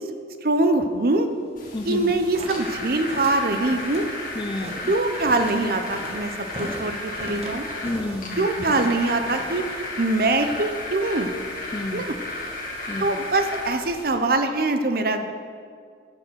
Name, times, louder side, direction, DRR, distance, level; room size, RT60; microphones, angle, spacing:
voice 1, 0.4-1.3 1.8-4.1 4.9-7.6 8.4-9.6 10.0-11.3 11.9-12.1 13.0-15.4, right 2 dB, 55° right, 7 dB, 0.8 m, -23 dB
sound 1, 1.6-14.1, left 2 dB, 50° left, 2.4 m, -34 dB
voice 2, 1.7-2.1 4.4-4.9 7.8-8.5 11.7-12.1 12.9-13.1, left 2 dB, 25° left, 9 dB, 0.4 m, -30 dB
sound 2, 2.0-8.2 8.5-9.8, right 1 dB, 35° right, 1.3 m, -38 dB
10.0 x 7.6 x 6.4 m, 2.2 s
head